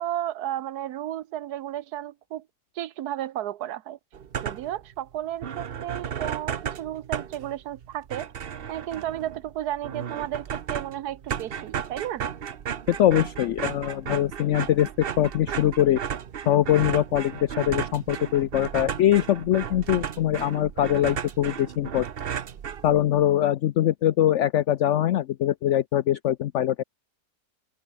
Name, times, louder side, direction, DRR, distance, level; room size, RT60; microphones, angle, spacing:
voice 1, 0.0-2.5 2.8-4.0 4.4-8.3 8.7-12.2, right 12 dB, 70° right, 1.2 m, -33 dB
sound 1, 4.1-4.8 5.1-5.2 5.4-23.2, right 8 dB, 45° right, 0.8 m, -34 dB
voice 2, 12.9-16.0 16.5-22.1 22.8-26.8, left 12 dB, 85° left, 0.6 m, -23 dB
open air
omnidirectional pair, 1.8 m